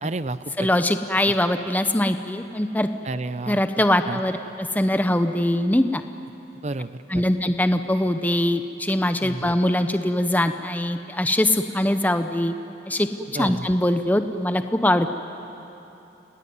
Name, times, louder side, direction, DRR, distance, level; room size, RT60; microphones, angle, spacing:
voice 1, 0.0-0.7 3.1-3.6 4.1-4.2 6.6-7.0 9.2-9.4 13.3-13.7, right 2 dB, 40° right, 14 dB, 0.7 m, -30 dB
voice 2, 0.6-2.9 3.5-6.0 7.1-12.5 12.9-13.1 13.3-15.1, left 1 dB, 10° left, 8 dB, 0.7 m, -22 dB
29.5 x 18.5 x 9.5 m, 2.9 s
head